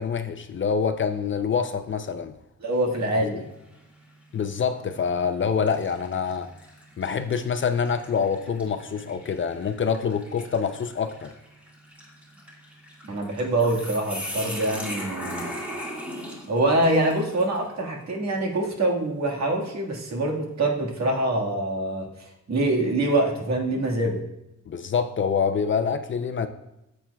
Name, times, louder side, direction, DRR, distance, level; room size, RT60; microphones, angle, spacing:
voice 1, 0.0-2.3 3.1-3.4 4.3-6.5 7.0-11.3 24.7-26.5, left 6 dB, 40° left, 9 dB, 0.5 m, -26 dB
voice 2, 2.6-3.4 13.0-15.5 16.5-24.2, right 1 dB, 60° right, 1 dB, 1.7 m, -25 dB
sound 1, 2.7-3.2 3.7-3.9 4.8-5.0 5.7-17.7, equal, 5° right, 1.8 m, -39 dB
14.0 x 7.4 x 2.3 m, 0.89 s
wide cardioid pair, 180°, 30 cm